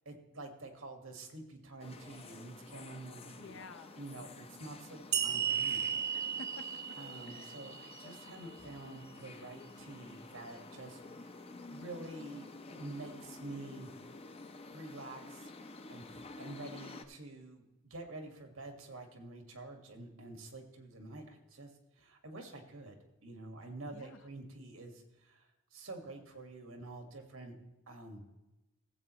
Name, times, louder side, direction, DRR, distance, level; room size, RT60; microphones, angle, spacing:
voice 1, 0.1-3.7 4.0-5.8 7.0-11.0 11.7-13.9 14.7-15.5 15.9-16.0 16.4-21.7 22.0-27.6 27.9-28.3, right 2 dB, 90° right, 4 dB, 1.8 m, -48 dB
sound 1, 1.8-17.0, left 3 dB, 30° left, 0.6 m, -50 dB
voice 2, 3.4-4.0 6.1-7.0 7.3-7.6 23.9-24.2, left 3 dB, 65° left, 8 dB, 0.8 m, -51 dB
sound 2, 5.1-8.5, right 8 dB, 55° right, 0.9 m, -35 dB
16.0 x 7.8 x 3.1 m, 1.0 s
head